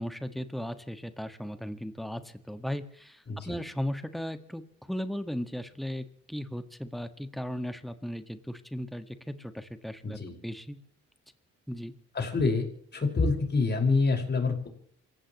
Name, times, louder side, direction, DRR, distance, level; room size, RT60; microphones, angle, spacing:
voice 1, 0.0-10.8 11.7-11.9, equal, ahead, 9 dB, 1.7 m, -36 dB
voice 2, 10.0-10.4 12.1-12.7 12.9-14.7, left 4 dB, 35° left, 3 dB, 5.5 m, -26 dB
27.5 x 16.0 x 3.1 m, 0.66 s
cardioid pair, 90°, 30 cm